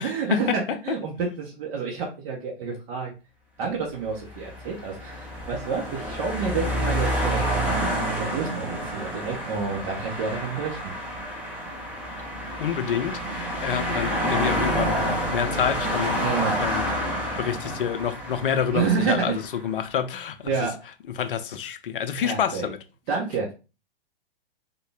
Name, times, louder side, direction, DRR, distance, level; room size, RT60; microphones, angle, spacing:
voice 1, 0.0-3.1 3.6-10.9 16.2-16.6 18.7-19.4 20.4-20.8 22.2-22.7 23.1-23.5, right 5 dB, 35° right, 0.9 m, -29 dB
sound 1, 4.1-19.5, equal, 5° right, 0.7 m, -28 dB
voice 2, 12.6-15.0 15.3-16.2 16.6-16.8 17.4-20.5 21.2-22.8, left 8 dB, 60° left, 0.6 m, -28 dB
3.6 x 2.3 x 3.4 m
figure-of-eight pair, 115°, 30 cm